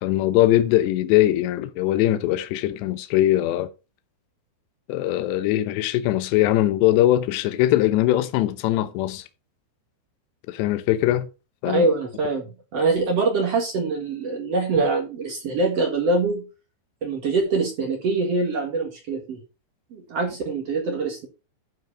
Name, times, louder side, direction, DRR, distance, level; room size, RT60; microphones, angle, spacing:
voice 1, 0.0-3.7 4.9-9.3 10.5-11.3 11.6-11.9, left 14 dB, 80° left, 2.9 m, -21 dB
voice 2, 11.6-16.5 17.0-19.4 19.9-21.3, right 3 dB, 55° right, 1.8 m, -24 dB
12.0 x 4.7 x 5.6 m
omnidirectional pair, 5.3 m